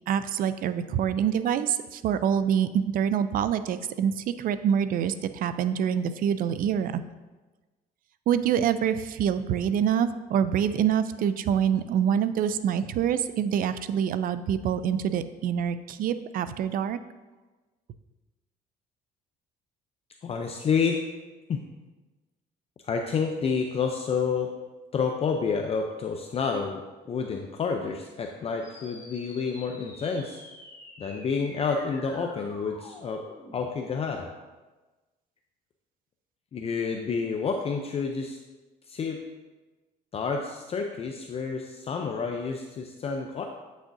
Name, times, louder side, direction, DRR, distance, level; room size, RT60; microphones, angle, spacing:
voice 1, 0.1-7.0 8.3-17.0, right 8 dB, 55° right, 12 dB, 0.4 m, -26 dB
voice 2, 20.2-21.0 21.5-21.6 22.8-24.5 24.9-30.4 31.0-33.2 33.5-34.3 36.5-38.4 38.9-39.2 40.1-43.4, left 5 dB, 35° left, 3 dB, 0.5 m, -29 dB
sound 1, 28.6-33.6, left 1 dB, 15° left, 2.0 m, -48 dB
8.1 x 6.3 x 2.6 m, 1.2 s
cardioid pair, 110°, 17 cm